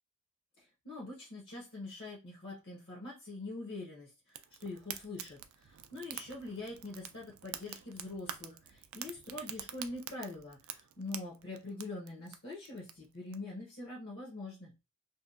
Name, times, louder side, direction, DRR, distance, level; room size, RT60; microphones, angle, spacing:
voice 1, 0.6-14.7, left 2 dB, 55° left, -4 dB, 0.8 m, -44 dB
Fire, 4.3-13.4, right 11 dB, 65° right, 0.3 m, -47 dB
2.7 x 2.1 x 2.4 m, 0.30 s
head